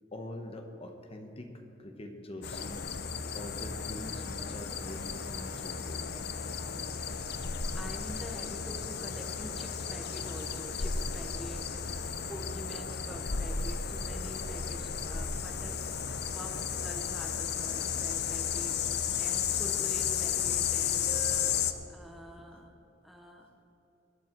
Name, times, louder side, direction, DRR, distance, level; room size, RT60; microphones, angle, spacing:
voice 1, 0.1-1.5 1.8-2.8 3.3-6.1, left 1 dB, 30° left, 4 dB, 1.1 m, -44 dB
sound 1, 2.4-21.7, left 7 dB, 60° left, 0.7 m, -33 dB
voice 2, 6.7-22.7 23.0-23.5, equal, ahead, 2 dB, 1.0 m, -46 dB
21.0 x 10.5 x 4.5 m, 2.9 s
head